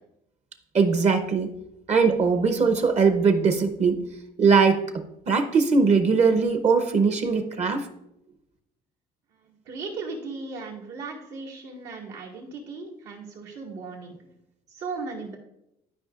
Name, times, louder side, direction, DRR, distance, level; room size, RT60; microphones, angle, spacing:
voice 1, 0.7-1.5 1.9-4.0 4.4-7.9, right 5 dB, 40° right, 7 dB, 0.8 m, -21 dB
voice 2, 9.4-14.2 14.7-15.4, right 4 dB, 85° right, -3 dB, 2.1 m, -37 dB
12.0 x 4.9 x 2.4 m, 0.83 s
cardioid pair, 110°, 17 cm